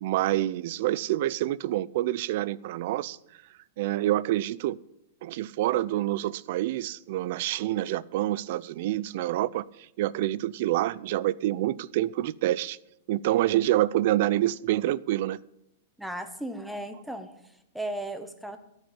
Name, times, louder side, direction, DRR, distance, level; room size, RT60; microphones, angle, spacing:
voice 1, 0.0-3.2 3.8-4.8 5.2-12.8 13.1-15.4, right 14 dB, 50° right, 0.4 m, -27 dB
voice 2, 16.0-18.6, right 1 dB, ahead, 0.9 m, -36 dB
13.5 x 6.6 x 8.8 m
supercardioid pair, 165°, 0 cm